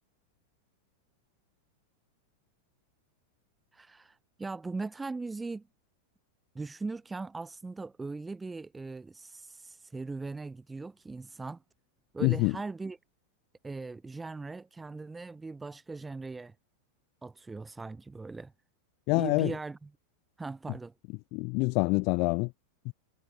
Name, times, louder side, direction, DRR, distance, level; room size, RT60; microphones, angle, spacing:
voice 1, 3.7-5.6 6.5-11.6 12.1-13.0 13.6-16.5 17.2-18.5 19.1-19.9 20.4-20.9, right 3 dB, 10° right, 1.4 m, -39 dB
voice 2, 12.2-12.6 19.1-19.5 21.3-22.5 22.9-23.0, left 29 dB, 45° left, 0.3 m, -26 dB
figure-of-eight pair, 90°, 0 cm